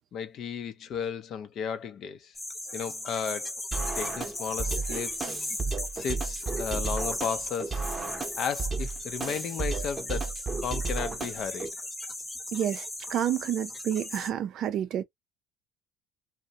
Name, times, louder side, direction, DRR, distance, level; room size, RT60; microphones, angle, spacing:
voice 1, 0.1-2.3 2.7-3.5 3.9-5.3 5.9-7.8 8.4-10.3 10.6-11.7, left 7 dB, 55° left, 0.5 m, -34 dB
sound 1, 2.3-14.3, left 1 dB, 15° left, 0.8 m, -37 dB
sound 2, 3.7-11.7, right 4 dB, 20° right, 0.8 m, -33 dB
voice 2, 12.5-15.0, right 10 dB, 55° right, 0.4 m, -30 dB
2.4 x 2.0 x 2.7 m
supercardioid pair, 90°, 0 cm